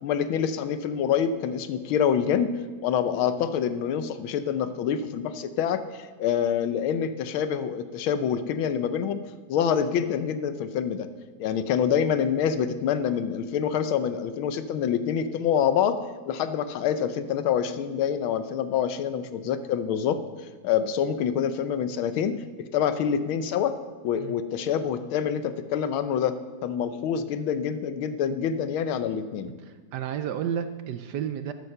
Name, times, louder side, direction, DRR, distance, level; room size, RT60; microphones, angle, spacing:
voice 1, 0.0-2.5 2.8-11.1 11.4-16.0 16.3-20.2 20.6-22.3 22.7-23.8 24.0-29.5, left 8 dB, 90° left, 11 dB, 1.6 m, -26 dB
voice 2, 29.6-31.5, right 9 dB, 70° right, 9 dB, 1.0 m, -31 dB
12.5 x 9.6 x 6.7 m, 1.4 s
omnidirectional pair, 2.2 m